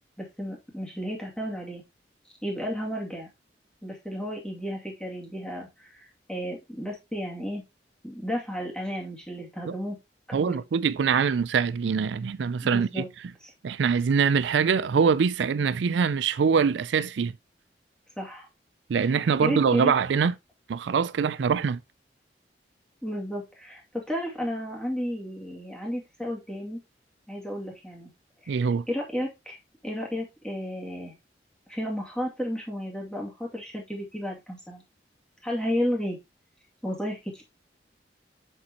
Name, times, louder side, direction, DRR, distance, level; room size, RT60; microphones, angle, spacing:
voice 1, 0.2-1.8 2.4-3.3 3.8-7.6 8.0-10.0 10.3-10.6 12.7-13.1 13.4-13.5 18.2-18.5 19.4-19.9 23.0-26.8 27.3-28.1 28.4-29.6 29.8-31.1 31.7-34.8 35.4-36.2 36.8-37.4, equal, 5° left, 2.4 m, -33 dB
voice 2, 10.3-13.0 13.6-17.3 18.9-20.3 20.7-21.8 28.5-28.9, right 6 dB, 85° right, 0.4 m, -24 dB
7.3 x 6.6 x 2.9 m
head